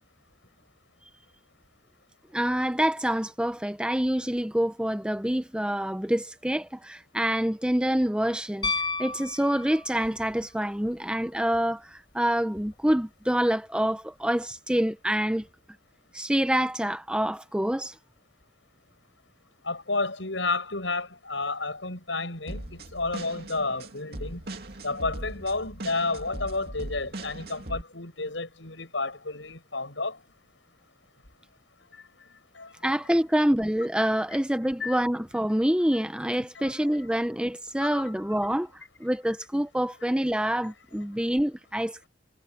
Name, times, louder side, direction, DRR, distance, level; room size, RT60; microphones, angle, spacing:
voice 1, 2.3-8.7 9.0-15.5 16.1-18.0 32.8-42.1, equal, 5° right, 0.8 m, -26 dB
Piano, 8.6-10.2 12.6-12.7, left 4 dB, 25° left, 4.7 m, -31 dB
voice 2, 19.6-24.4 24.8-30.2 32.5-32.7 34.8-35.0 36.5-36.7 37.8-37.9, left 3 dB, 75° left, 7.4 m, -31 dB
sound 1, 22.5-27.8, right 1 dB, 55° right, 2.7 m, -39 dB
head